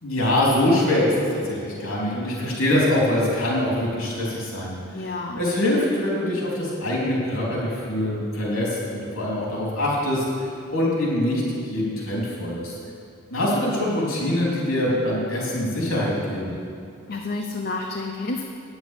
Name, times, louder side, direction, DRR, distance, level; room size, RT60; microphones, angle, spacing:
voice 1, 0.0-5.1 5.3-11.4 11.7-12.8 13.3-16.5, left 1 dB, 85° left, -4 dB, 3.5 m, -24 dB
voice 2, 4.9-5.4 17.1-18.4, left 3 dB, 45° left, 1 dB, 0.7 m, -30 dB
9.8 x 8.0 x 8.4 m, 2.5 s
head